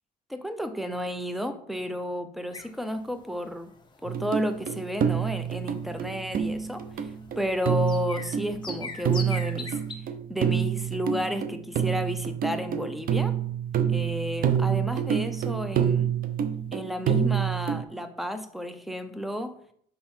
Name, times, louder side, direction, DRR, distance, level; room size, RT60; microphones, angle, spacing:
voice 1, 0.3-3.7 4.0-9.8 10.3-13.4 13.9-16.1 16.7-19.5, left 1 dB, ahead, 9 dB, 0.7 m, -32 dB
sound 1, 2.5-10.0, left 4 dB, 25° left, 1.0 m, -43 dB
sound 2, 4.1-17.8, right 8 dB, 60° right, 0.8 m, -28 dB
5.7 x 5.4 x 4.4 m, 0.64 s
cardioid pair, 110°, 17 cm